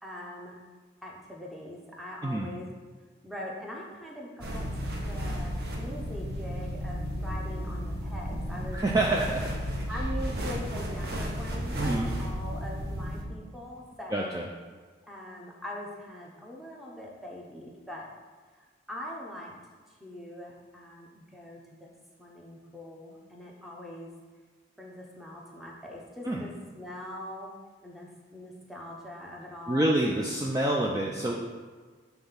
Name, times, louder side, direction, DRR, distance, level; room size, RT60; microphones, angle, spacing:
voice 1, 0.0-0.6 1.0-2.7 3.2-4.7 5.1-8.8 9.9-14.3 15.0-18.1 18.6-19.5 20.0-21.9 22.2-24.1 24.8-27.5 27.8-29.9, left 1 dB, ahead, -3 dB, 0.8 m, -42 dB
sound 1, 4.4-13.2, equal, 55° right, 0.8 m, -33 dB
voice 2, 8.7-9.6 11.7-12.1 14.1-14.5 26.3-26.4 29.7-31.3, right 1 dB, 20° right, -2 dB, 0.4 m, -27 dB
5.4 x 3.4 x 5.7 m, 1.4 s
head